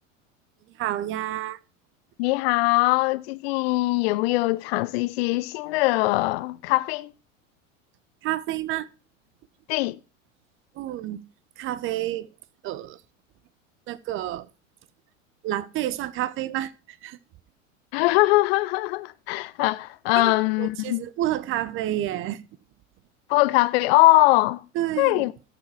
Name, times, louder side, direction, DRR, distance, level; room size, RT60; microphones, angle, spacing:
voice 1, 0.8-1.6 8.2-8.9 10.8-11.2 11.6-12.3 12.6-13.0 13.9-14.5 15.4-16.7 17.0-17.2 20.2-20.3 20.6-22.4 24.7-25.2, right 13 dB, 30° right, 0.5 m, -29 dB
voice 2, 2.2-7.1 9.7-10.0 17.9-21.0 23.3-24.6 25.0-25.3, left 20 dB, 50° left, 0.5 m, -21 dB
13.5 x 4.9 x 4.6 m
figure-of-eight pair, 80°, 39 cm